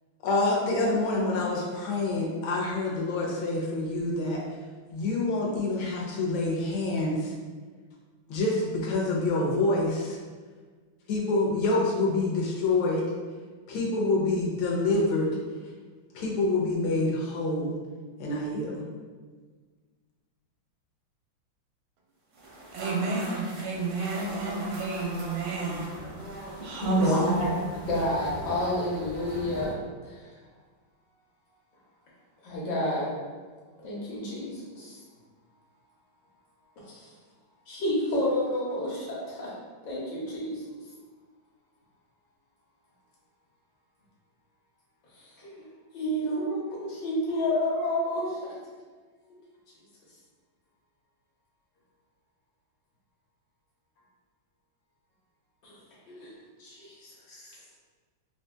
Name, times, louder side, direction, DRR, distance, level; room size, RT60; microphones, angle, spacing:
voice 1, 0.2-4.4 4.9-7.3 8.3-10.2 11.1-13.0 13.7-15.3 16.1-17.7 18.2-18.8, left 2 dB, 80° left, -3 dB, 1.5 m, -27 dB
sound 1, 22.3-29.7, right 1 dB, 70° right, 0.7 m, -39 dB
voice 2, 22.7-26.0 26.6-27.5, right 3 dB, 85° right, -1 dB, 1.5 m, -31 dB
voice 3, 26.5-27.5 27.9-29.8 30.0-30.3 32.4-33.1 33.8-35.0 36.8-37.1 37.7-39.5 39.8-40.6 45.1-45.5 45.9-48.5 55.6-55.7 56.1-56.3 56.6-57.6, left 1 dB, 65° left, -6 dB, 1.5 m, -30 dB
3.8 x 2.7 x 2.2 m, 1.5 s
omnidirectional pair, 2.2 m